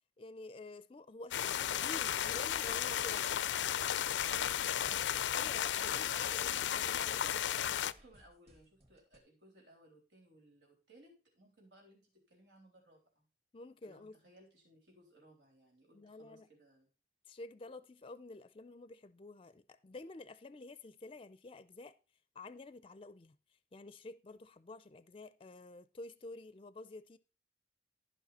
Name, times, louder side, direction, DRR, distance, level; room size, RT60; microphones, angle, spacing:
voice 1, 0.2-3.3 5.3-7.8 13.5-14.2 15.9-16.5 17.3-21.9 22.3-23.4 23.7-27.2, left 2 dB, 30° left, 0.4 m, -50 dB
sound 1, 1.3-7.9, left 10 dB, 85° left, 0.4 m, -34 dB
sound 2, 2.3-9.2, equal, 35° right, 2.0 m, -64 dB
voice 2, 3.3-5.0 7.6-13.3 13.8-16.9, right 1 dB, 85° right, 3.6 m, -63 dB
13.0 x 5.6 x 4.2 m
head